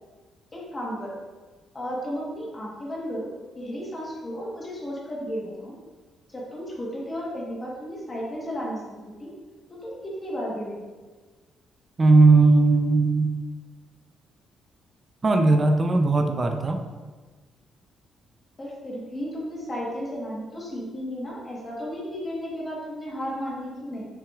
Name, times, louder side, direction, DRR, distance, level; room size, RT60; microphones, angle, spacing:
voice 1, 0.5-1.2 1.7-3.3 3.6-5.7 6.3-9.3 9.7-10.8 18.6-24.0, equal, 20° left, -4 dB, 1.2 m, -33 dB
voice 2, 12.0-13.3 15.2-16.8, right 3 dB, 20° right, 5 dB, 0.4 m, -18 dB
6.7 x 6.1 x 2.4 m, 1.4 s
cardioid pair, 170°, 0 cm